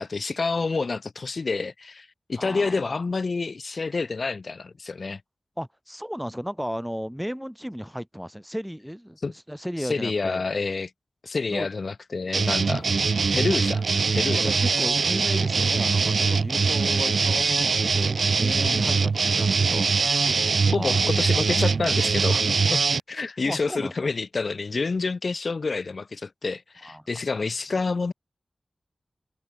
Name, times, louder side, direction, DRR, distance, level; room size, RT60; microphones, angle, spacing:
voice 1, 0.0-5.2 9.2-9.3 9.8-10.9 11.2-12.9 13.3-13.8 14.1-14.5 18.6-19.0 20.7-22.8 23.1-28.1, left 4 dB, 60° left, 0.6 m, -28 dB
voice 2, 2.4-2.9 5.6-9.2 9.5-10.4 11.5-11.7 14.3-20.3 20.8-21.0 23.4-23.9 26.8-27.0, equal, ahead, 0.7 m, -34 dB
sound 1, 12.3-23.0, right 4 dB, 80° right, 0.5 m, -22 dB
wide cardioid pair, 95°, 0 cm